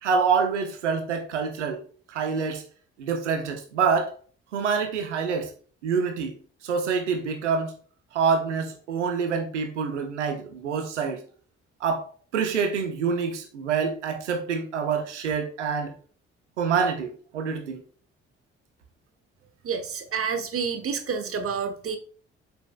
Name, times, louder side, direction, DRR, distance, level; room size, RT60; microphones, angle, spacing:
voice 1, 0.0-1.8 2.1-2.6 3.0-4.1 4.5-5.5 5.8-6.3 6.6-7.7 8.1-11.2 11.8-12.1 12.3-15.9 16.6-17.8, right 5 dB, 80° right, 5 dB, 1.1 m, -26 dB
voice 2, 19.6-22.0, right 6 dB, 40° right, 8 dB, 1.2 m, -29 dB
7.3 x 7.2 x 2.4 m, 0.42 s
figure-of-eight pair, 40°, 35 cm